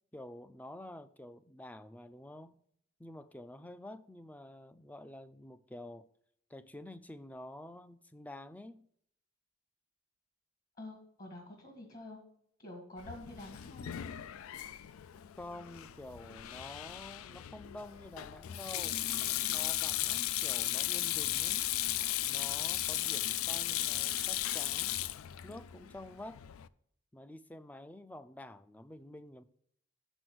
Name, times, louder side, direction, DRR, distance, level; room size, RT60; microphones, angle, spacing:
voice 1, 0.1-2.6 3.0-6.1 6.5-8.8 15.4-19.0 19.5-21.6 22.3-25.0 25.4-26.4 27.1-29.4, left 1 dB, 5° left, 0.3 m, -49 dB
voice 2, 10.8-12.2 12.6-14.0, left 1 dB, 40° left, 1.8 m, -48 dB
Sink (filling or washing), 13.0-26.7, left 14 dB, 85° left, 0.4 m, -36 dB
7.1 x 6.2 x 6.0 m
head